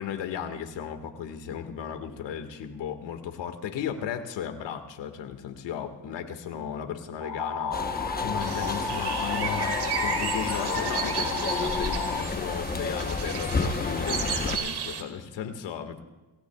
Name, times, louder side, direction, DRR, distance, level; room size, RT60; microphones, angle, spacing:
voice 1, 0.0-16.0, left 8 dB, 90° left, 7 dB, 1.9 m, -35 dB
sound 1, 7.2-12.2, left 5 dB, 50° left, 1.4 m, -32 dB
sound 2, 7.7-14.6, left 4 dB, 20° left, 1.0 m, -31 dB
sound 3, 8.4-15.0, right 6 dB, 65° right, 2.3 m, -34 dB
27.5 x 17.0 x 2.4 m, 1.1 s
cardioid pair, 100°, 43 cm